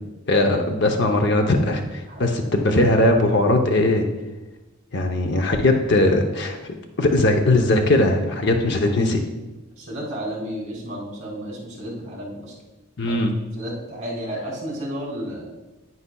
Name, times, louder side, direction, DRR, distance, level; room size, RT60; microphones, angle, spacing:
voice 1, 0.3-4.1 4.9-9.2 13.0-13.3, left 2 dB, 55° left, 4 dB, 0.8 m, -19 dB
voice 2, 2.1-2.6 9.8-12.5 13.0-13.2 13.6-15.5, equal, 35° right, -3 dB, 3.2 m, -32 dB
9.7 x 9.7 x 2.3 m, 1.1 s
head